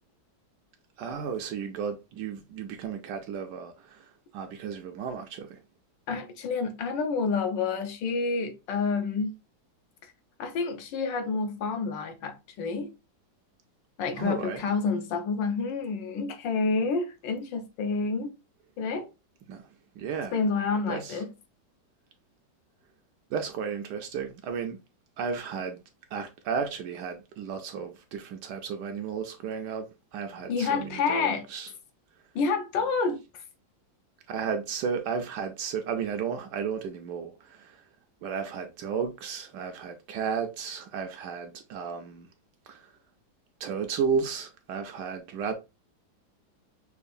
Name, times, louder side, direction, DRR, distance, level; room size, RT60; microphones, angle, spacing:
voice 1, 1.0-5.6 14.2-14.6 19.5-19.7 20.0-20.4 20.9-21.2 23.3-24.8 25.2-25.8 26.1-31.7 34.3-37.8 38.2-42.3 42.7-42.9 43.6-45.5, right 6 dB, 70° right, 1.0 m, -33 dB
voice 2, 6.1-9.3 10.4-12.9 14.0-18.3 18.8-19.1 20.3-21.3 30.5-31.5 32.3-33.2, left 4 dB, 75° left, 1.4 m, -28 dB
5.6 x 2.4 x 2.6 m
omnidirectional pair, 2.1 m